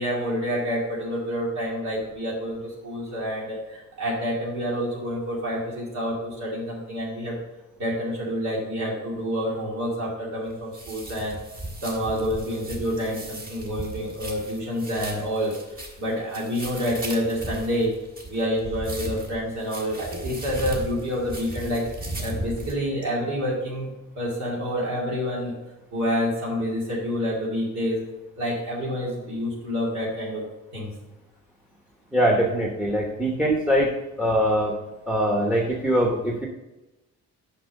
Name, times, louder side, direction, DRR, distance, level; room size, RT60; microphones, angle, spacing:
voice 1, 0.0-7.3 7.8-11.4 11.8-15.5 16.0-17.9 18.3-21.9 22.2-23.9 24.2-25.5 25.9-28.0 28.4-30.4 30.7-30.9, equal, 65° right, -5 dB, 2.5 m, -28 dB
sound 1, 10.5-22.7, right 1 dB, 30° right, 1.9 m, -36 dB
voice 2, 32.1-33.9 34.2-34.7 35.1-36.5, equal, 5° right, 1 dB, 1.0 m, -22 dB
6.0 x 5.6 x 5.2 m, 1.0 s
cardioid pair, 90°, 30 cm